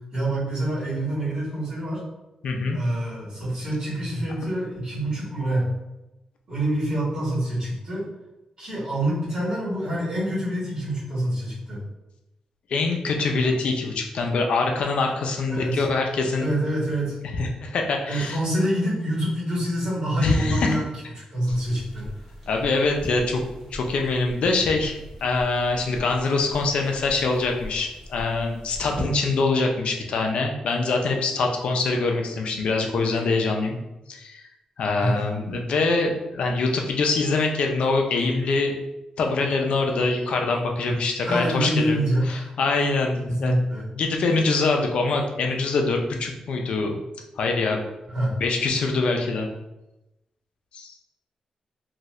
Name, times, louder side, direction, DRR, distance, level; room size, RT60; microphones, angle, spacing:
voice 1, 0.1-2.0 2.7-5.7 6.5-8.1 8.6-11.8 15.5-15.8 16.4-17.2 18.0-20.9 21.2-22.1 35.0-35.2 41.2-42.5 43.3-43.9 48.1-48.4, right 1 dB, 40° right, -10 dB, 1.5 m, -26 dB
voice 2, 2.4-2.8 12.7-16.5 17.4-18.4 20.2-20.8 22.5-23.4 23.7-24.9 25.2-33.8 34.1-34.4 34.8-38.7 39.2-42.0 42.3-43.6 43.9-46.9 47.4-47.8 48.4-49.5 50.7-50.9, left 3 dB, 65° left, 2 dB, 0.5 m, -24 dB
sound 1, 21.5-29.0, equal, 10° right, 1.1 m, -40 dB
2.7 x 2.5 x 3.1 m, 0.95 s
wide cardioid pair, 170°, 2 cm